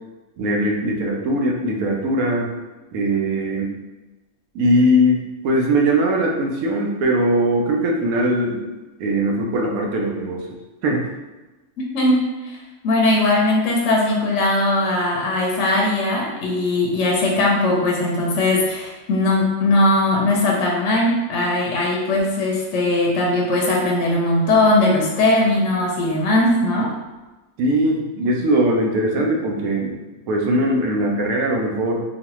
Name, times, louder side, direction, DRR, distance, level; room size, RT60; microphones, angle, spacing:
voice 1, 0.4-2.5 2.9-3.7 4.5-8.6 9.0-10.4 10.8-11.0 27.6-29.9 30.3-32.0, right 1 dB, 85° right, 0 dB, 1.0 m, -20 dB
voice 2, 11.9-12.6 12.8-26.9, left 2 dB, 70° left, -2 dB, 0.8 m, -19 dB
3.0 x 2.1 x 2.9 m, 1.1 s
omnidirectional pair, 1.5 m